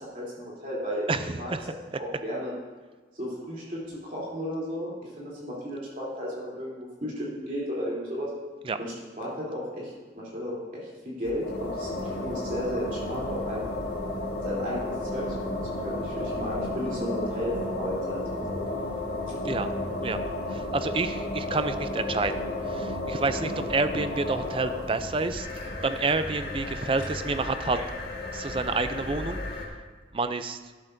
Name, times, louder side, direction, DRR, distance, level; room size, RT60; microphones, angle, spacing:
voice 1, 0.0-1.1 1.3-2.5 3.1-8.3 8.8-13.6 14.4-18.6 27.4-27.8, equal, 45° right, -5 dB, 3.2 m, -34 dB
sound 1, 11.2-29.7, left 1 dB, 60° left, 1.7 m, -33 dB
voice 2, 20.5-25.5 25.8-27.8 28.3-29.4 30.1-30.6, right 3 dB, 30° right, 10 dB, 0.4 m, -28 dB
12.0 x 11.5 x 2.6 m, 1.4 s
head